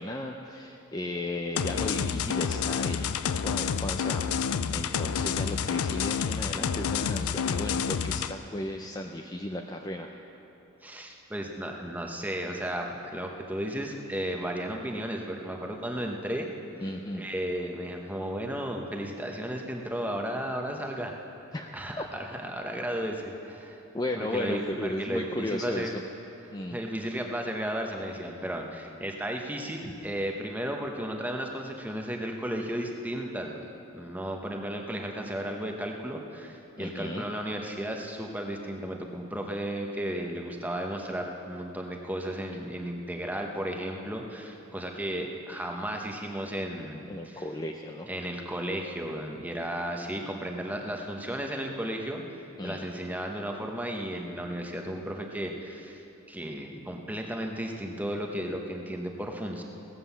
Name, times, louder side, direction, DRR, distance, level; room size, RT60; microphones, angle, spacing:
voice 1, 0.0-10.1 16.8-17.3 21.5-21.7 22.0-22.1 23.9-26.0 26.5-26.8 36.8-37.3 47.1-48.1 52.6-52.9, left 1 dB, 15° left, 2 dB, 0.4 m, -35 dB
sound 1, 1.5-8.3, left 7 dB, 85° left, 0.4 m, -29 dB
voice 2, 10.8-16.6 17.1-21.1 21.7-23.8 24.2-25.9 26.7-33.6 33.9-47.4 48.1-59.6, right 1 dB, 5° right, 2 dB, 0.9 m, -34 dB
17.0 x 7.6 x 7.0 m, 3.0 s
head